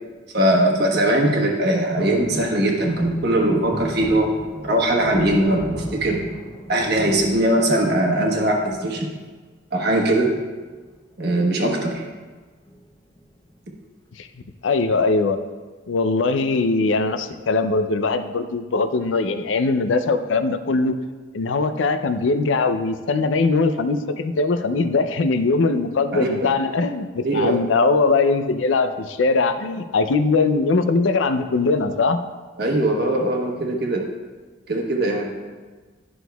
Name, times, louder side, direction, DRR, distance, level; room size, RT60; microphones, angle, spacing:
voice 1, 0.3-4.3 4.6-6.3 6.7-9.1 9.7-10.4 11.2-12.0 26.1-26.5 27.2-27.6 32.6-34.1 34.7-35.3, right 1 dB, 55° right, 1 dB, 1.1 m, -20 dB
sound 1, 2.0-8.1 8.6-9.2 10.5-10.9 11.1-11.2 11.5-11.8 12.6-13.6 14.0-14.1, equal, 20° left, 0.8 m, -35 dB
voice 2, 14.6-15.4 15.9-20.9 21.3-32.2, left 3 dB, 70° left, 9 dB, 0.5 m, -21 dB
11.0 x 6.1 x 2.3 m, 1.4 s
head